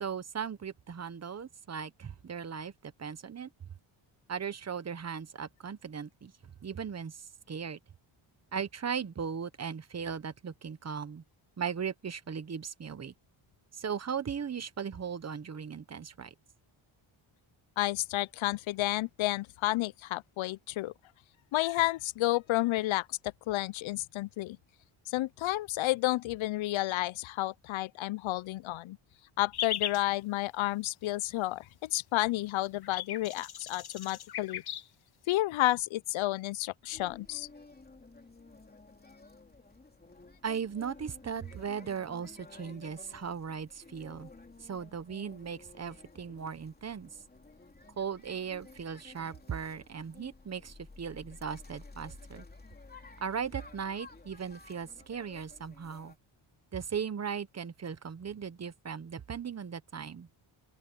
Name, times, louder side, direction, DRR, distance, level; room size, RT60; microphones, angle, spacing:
voice 1, 0.0-3.5 4.3-6.3 6.6-7.8 8.5-11.2 11.6-13.1 13.7-16.3 40.4-44.3 44.6-47.1 48.0-52.4 53.2-56.1 56.7-60.3, right 7 dB, 30° right, 1.0 m, -38 dB
voice 2, 17.8-20.9 21.5-23.2 23.5-24.6 25.1-29.0 29.4-34.6 35.3-37.5, left 17 dB, 70° left, 0.5 m, -31 dB
sound 1, 29.5-30.0 32.2-32.3 32.5-34.8, left 10 dB, 50° left, 1.0 m, -37 dB
sound 2, 36.9-56.2, left 3 dB, 20° left, 3.0 m, -54 dB
open air
wide cardioid pair, 140°, 49 cm